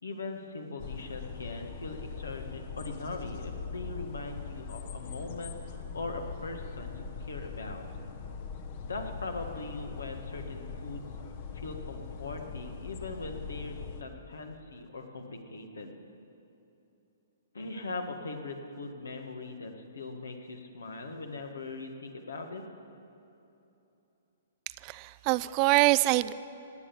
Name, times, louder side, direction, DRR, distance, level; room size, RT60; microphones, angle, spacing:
voice 1, 0.0-7.8 8.8-11.1 11.5-15.9 17.5-22.6, left 3 dB, 75° left, 5 dB, 1.8 m, -40 dB
sound 1, 0.8-14.0, left 5 dB, 45° left, 1.1 m, -41 dB
voice 2, 24.8-26.3, right 19 dB, 35° right, 17 dB, 0.4 m, -24 dB
17.5 x 9.8 x 7.1 m, 2.9 s
figure-of-eight pair, 120°, 0 cm